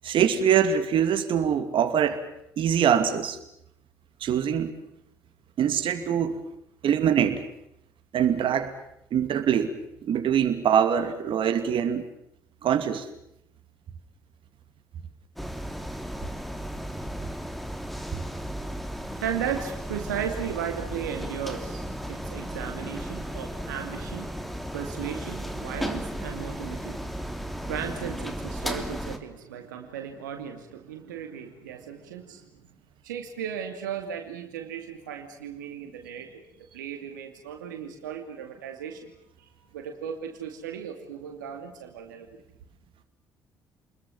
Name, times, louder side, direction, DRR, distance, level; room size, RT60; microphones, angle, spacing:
voice 1, 0.0-2.3 2.6-3.4 4.2-4.7 5.6-6.4 6.8-7.4 8.1-8.7 9.1-9.7 10.1-12.0 12.6-13.1, right 8 dB, 60° right, 8 dB, 2.6 m, -23 dB
sound 1, 15.4-29.2, equal, ahead, 3.1 m, -35 dB
voice 2, 19.0-32.5 33.0-36.4 36.7-39.1 39.4-42.4, right 8 dB, 90° right, 4 dB, 2.5 m, -36 dB
29.5 x 21.5 x 7.3 m, 0.78 s
hypercardioid pair, 50°, 10 cm